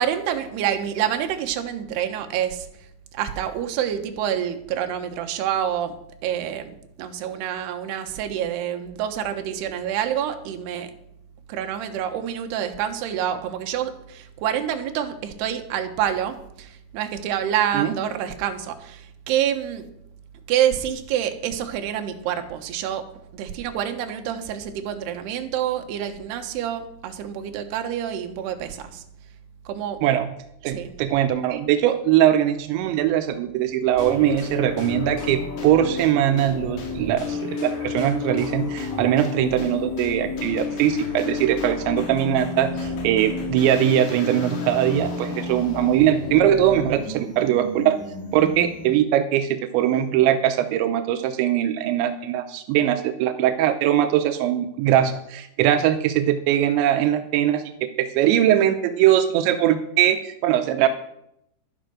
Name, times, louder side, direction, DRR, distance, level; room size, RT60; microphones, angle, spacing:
voice 1, 0.0-2.7 3.1-5.9 6.2-10.9 11.5-19.9 20.5-23.0 23.3-29.0 29.7-30.0 30.7-30.9, right 10 dB, 70° right, 6 dB, 3.1 m, -27 dB
voice 2, 30.6-48.0 48.3-57.6 58.0-60.9, right 11 dB, 85° right, 9 dB, 3.0 m, -21 dB
sound 1, 34.0-49.1, left 4 dB, 55° left, 4.0 m, -31 dB
12.0 x 10.0 x 6.4 m, 0.77 s
omnidirectional pair, 5.3 m